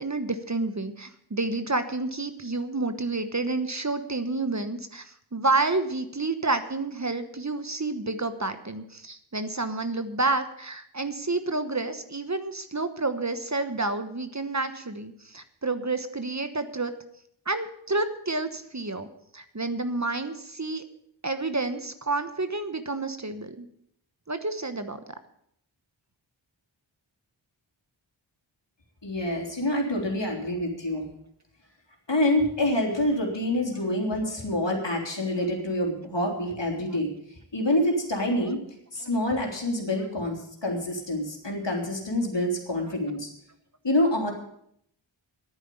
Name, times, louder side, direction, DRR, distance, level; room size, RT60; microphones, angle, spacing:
voice 1, 0.0-16.9 17.5-19.1 19.3-20.8 21.2-23.7 24.3-25.0 39.0-39.1, right 3 dB, 35° right, 9 dB, 1.2 m, -29 dB
voice 2, 29.0-31.1 32.1-37.1 37.5-38.6 38.9-43.3 43.8-44.3, left 1 dB, 65° left, 1 dB, 3.3 m, -27 dB
11.0 x 9.3 x 8.4 m, 0.72 s
wide cardioid pair, 40°, 47 cm